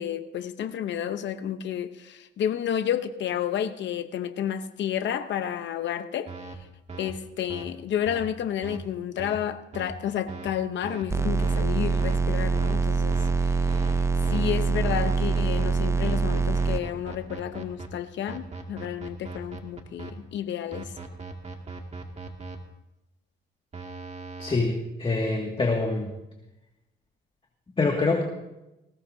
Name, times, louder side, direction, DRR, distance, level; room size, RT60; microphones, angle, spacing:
voice 1, 0.0-6.3 7.0-20.9, left 9 dB, 65° left, 0.9 m, -31 dB
sound 1, 6.3-6.6 6.9-7.1 7.5-7.6 8.1-8.2 8.6-8.8 9.2-9.4 9.7-9.9 10.3-10.5 10.8-11.0 11.4-11.6 12.0-12.2 12.5-12.8 13.1-13.3 13.7-14.0 14.2-14.4 14.8-15.7 16.0-17.9 18.3-20.1 20.7-22.6 23.7-24.6, right 4 dB, 35° right, 2.2 m, -39 dB
sound 2, 11.1-16.8, right 4 dB, 15° right, 0.5 m, -24 dB
voice 2, 24.4-26.1 27.8-28.2, left 3 dB, 25° left, 2.1 m, -25 dB
20.0 x 16.5 x 2.7 m
cardioid pair, 90°, 20 cm